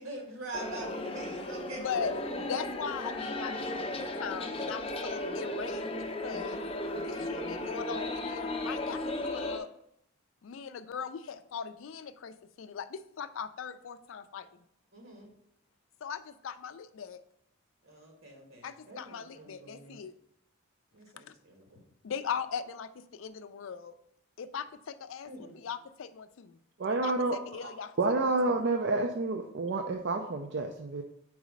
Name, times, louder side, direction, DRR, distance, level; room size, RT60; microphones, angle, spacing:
voice 1, 0.0-2.5 14.9-15.3 17.8-20.0 20.9-21.8 25.3-25.5, right 1 dB, 80° right, 0 dB, 1.9 m, -44 dB
sound 1, 0.5-9.6, left 1 dB, 25° left, 0.6 m, -35 dB
voice 2, 1.8-5.9 6.2-6.6 6.9-9.7 10.4-14.5 16.0-17.2 18.6-20.1 22.0-23.9 24.4-26.6 27.0-27.9 28.2-28.3, left 7 dB, 75° left, 12 dB, 0.4 m, -39 dB
voice 3, 26.8-31.0, right 3 dB, 55° right, 4 dB, 0.4 m, -30 dB
4.7 x 4.1 x 5.1 m, 0.74 s
head